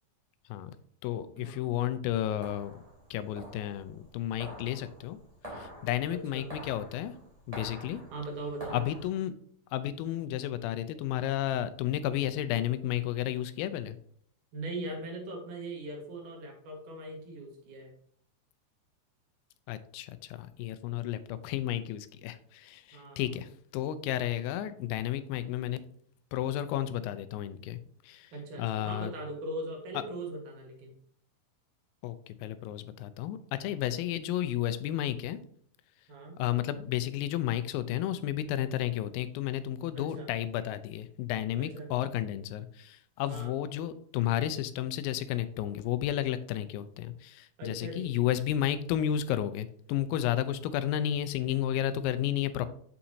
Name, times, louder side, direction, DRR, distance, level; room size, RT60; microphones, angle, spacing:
voice 1, 1.0-2.7 3.1-5.2 5.5-7.1 7.5-8.0 8.7-9.3 9.7-14.0 19.7-25.8 26.3-27.8 28.0-28.3 28.6-29.1 32.0-35.4 36.4-52.7, left 12 dB, 85° left, 13 dB, 2.3 m, -32 dB
sound 1, 2.1-9.1, equal, 15° right, 1.3 m, -47 dB
voice 2, 6.1-6.5 8.1-8.8 14.5-17.9 22.9-23.3 28.3-30.9 36.1-36.4 40.0-40.3 41.6-42.1 43.3-43.5 47.6-48.1, right 1 dB, 65° right, 1 dB, 2.8 m, -40 dB
7.3 x 5.7 x 2.7 m, 0.63 s
omnidirectional pair, 4.0 m